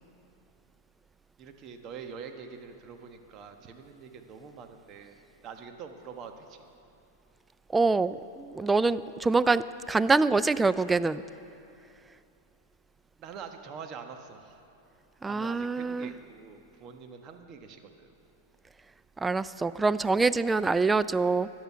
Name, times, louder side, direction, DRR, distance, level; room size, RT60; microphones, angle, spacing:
voice 1, 1.4-5.1 5.4-6.6 13.2-14.6 15.2-18.1, right 6 dB, 40° right, 6 dB, 1.2 m, -45 dB
voice 2, 7.7-11.2 15.2-16.1 19.2-21.5, right 3 dB, 10° right, 16 dB, 0.3 m, -25 dB
14.0 x 10.5 x 5.7 m, 2.6 s
hypercardioid pair, 110°, 0 cm